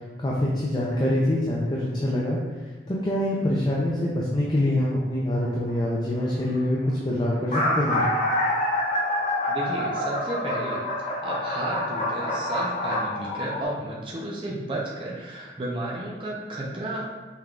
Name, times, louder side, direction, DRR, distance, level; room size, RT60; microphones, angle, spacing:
voice 1, 0.2-2.4 2.9-8.0, left 1 dB, 25° left, -5 dB, 0.5 m, -25 dB
sound 1, 5.4-5.7 6.5-6.6 6.8-6.9 7.3-13.6, left 1 dB, 40° left, 0.9 m, -27 dB
voice 2, 9.5-17.1, right 1 dB, 30° right, -5 dB, 0.6 m, -32 dB
5.6 x 3.5 x 2.4 m, 1.3 s
head